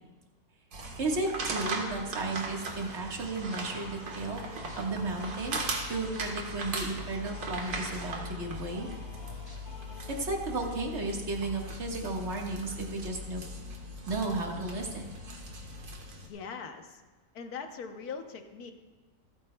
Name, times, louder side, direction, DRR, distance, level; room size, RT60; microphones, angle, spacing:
sound 1, 0.7-16.3, right 1 dB, 75° right, 1.9 m, -39 dB
voice 1, 1.0-4.4 4.8-5.6 5.9-8.9 10.2-13.4 14.1-15.0, right 2 dB, 45° right, 0 dB, 1.8 m, -34 dB
sound 2, 3.2-10.6, left 2 dB, 30° left, 1.2 m, -50 dB
sound 3, 3.5-3.8 4.7-4.8 5.5-5.6 6.1-6.5 7.6-7.7 9.5-9.6 10.1-10.2 11.7-11.8 12.6-12.7, equal, 15° left, 2.5 m, -54 dB
voice 2, 16.2-17.0 17.3-18.7, left 5 dB, 75° left, 6 dB, 1.4 m, -41 dB
26.5 x 8.9 x 2.2 m, 1.3 s
omnidirectional pair, 1.6 m